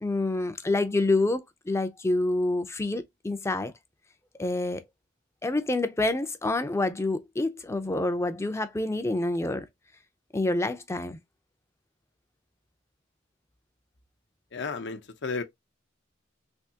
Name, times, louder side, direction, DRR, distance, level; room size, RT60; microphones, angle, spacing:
voice 1, 0.0-3.7 4.4-4.8 5.4-9.7 10.3-11.2, left 2 dB, 15° left, 0.4 m, -27 dB
voice 2, 14.5-15.4, left 4 dB, 65° left, 0.7 m, -33 dB
3.5 x 2.7 x 2.8 m
head